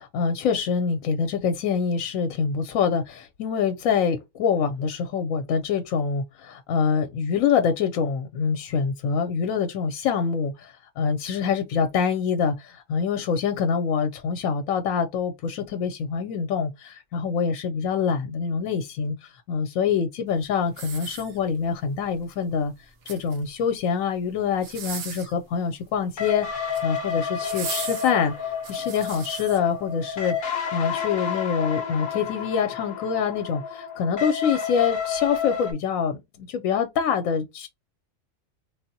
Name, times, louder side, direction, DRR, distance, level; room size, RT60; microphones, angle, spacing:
voice 1, 0.0-22.7 23.1-30.3 30.7-37.7, left 6 dB, 85° left, 1.0 m, -25 dB
sound 1, 20.7-21.7 22.8-23.6 24.5-25.4 26.5-26.9 27.4-29.6 30.2-30.3, right 6 dB, 75° right, 1.2 m, -37 dB
sound 2, 26.2-35.7, left 7 dB, 50° left, 0.7 m, -30 dB
3.5 x 2.0 x 2.6 m
omnidirectional pair, 1.4 m